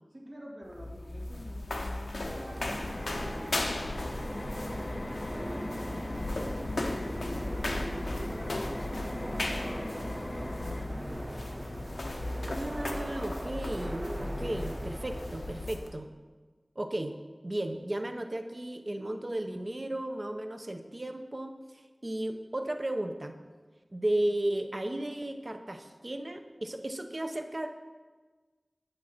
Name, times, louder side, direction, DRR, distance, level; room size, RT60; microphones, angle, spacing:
voice 1, 0.1-3.5 4.0-6.3 6.6-7.2 7.8-11.5, equal, 65° right, -3 dB, 2.2 m, -48 dB
sound 1, 0.6-15.9, left 2 dB, 85° left, 0.7 m, -37 dB
sound 2, 2.2-16.0, right 1 dB, 25° right, 0.4 m, -41 dB
sound 3, 2.8-10.9, left 2 dB, 55° left, 0.4 m, -40 dB
voice 2, 12.5-16.1 16.8-17.1 17.4-23.4 23.9-27.7, right 1 dB, 45° right, 6 dB, 0.8 m, -34 dB
8.9 x 7.4 x 4.4 m, 1.4 s
wide cardioid pair, 45°, 0 cm